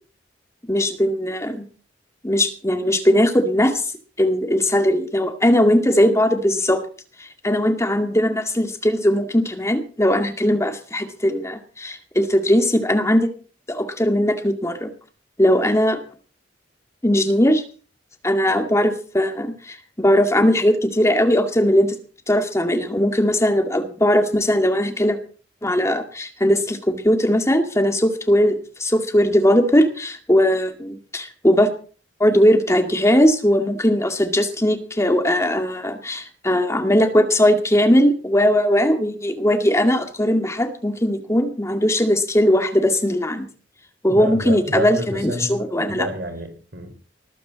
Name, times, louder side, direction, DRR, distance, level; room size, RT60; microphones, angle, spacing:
voice 1, 0.7-1.6 2.2-3.9 4.2-6.8 7.2-13.3 13.7-14.9 15.4-16.0 17.0-17.6 18.2-22.0 22.3-25.2 25.6-31.7 32.2-43.5 44.0-46.1, equal, 15° left, 2.1 m, -19 dB
voice 2, 44.1-46.9, right 1 dB, 60° right, 4.9 m, -29 dB
20.0 x 14.0 x 4.1 m
head